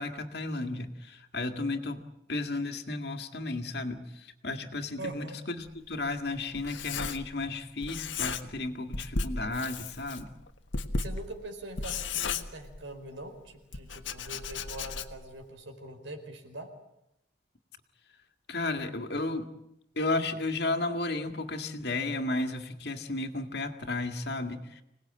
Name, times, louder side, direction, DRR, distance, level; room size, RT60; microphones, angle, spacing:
voice 1, 0.0-2.0 2.3-10.3 18.5-19.5 20.0-24.8, left 2 dB, 60° left, 6 dB, 2.0 m, -33 dB
voice 2, 5.0-5.4 10.9-16.7, right 1 dB, 85° right, 6 dB, 4.7 m, -43 dB
Writing, 5.7-7.6 7.8-8.7 8.9-13.1 13.7-15.4, left 4 dB, 85° left, 1.5 m, -35 dB
26.0 x 19.0 x 8.9 m, 0.84 s
head